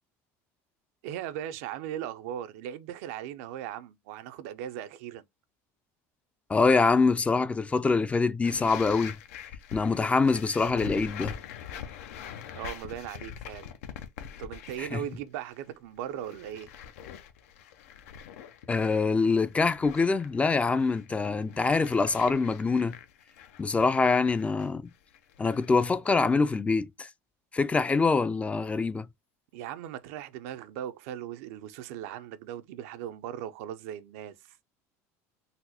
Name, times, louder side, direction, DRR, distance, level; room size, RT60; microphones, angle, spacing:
voice 1, 1.0-5.2 12.5-13.7 14.4-16.7 29.5-34.6, right 11 dB, 75° right, 0.5 m, -38 dB
voice 2, 6.5-9.2 9.7-11.4 14.8-15.0 18.7-23.0 23.6-24.9 25.4-27.1 27.5-29.1, left 4 dB, 15° left, 0.3 m, -25 dB
sound 1, 8.4-15.1 15.3-15.7 16.1-26.6, left 8 dB, 90° left, 0.5 m, -44 dB
4.0 x 2.0 x 2.7 m
supercardioid pair, 105°, 8 cm